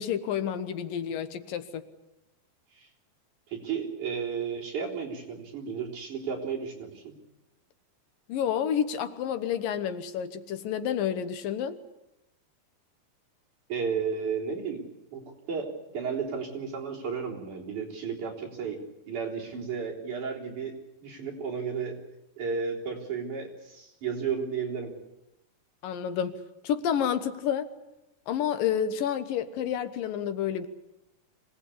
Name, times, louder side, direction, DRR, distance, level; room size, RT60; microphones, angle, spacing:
voice 1, 0.0-1.8 8.3-11.8 25.8-26.4 26.6-27.7 28.3-30.7, left 9 dB, 80° left, 10 dB, 2.8 m, -29 dB
voice 2, 3.5-7.2 13.7-14.9 15.1-15.2 15.5-18.8 19.1-20.8 21.0-22.0 22.4-24.9, right 6 dB, 60° right, -2 dB, 5.1 m, -33 dB
25.5 x 18.5 x 8.5 m, 0.94 s
omnidirectional pair, 4.0 m